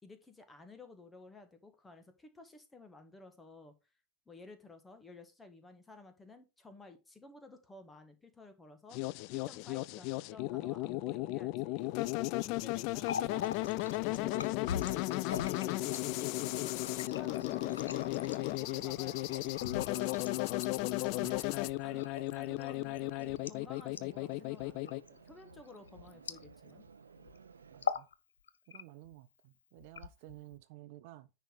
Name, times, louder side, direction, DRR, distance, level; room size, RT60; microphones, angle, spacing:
voice 1, 0.0-3.7 4.2-9.0 9.3-11.9 12.4-13.5 17.0-21.3 21.8-26.8, left 3 dB, 10° left, 1.7 m, -54 dB
sound 1, 8.9-25.0, left 19 dB, 45° left, 0.3 m, -35 dB
Water tap faucet, 12.9-26.9 27.2-27.4 27.7-28.1 28.5-29.1 29.8-30.6, left 7 dB, 65° left, 0.7 m, -43 dB
sound 2, 16.0-27.9, right 6 dB, 70° right, 0.9 m, -58 dB
voice 2, 27.7-28.1 28.7-31.3, right 16 dB, 50° right, 0.6 m, -53 dB
10.0 x 4.2 x 4.7 m
figure-of-eight pair, 90°, 0 cm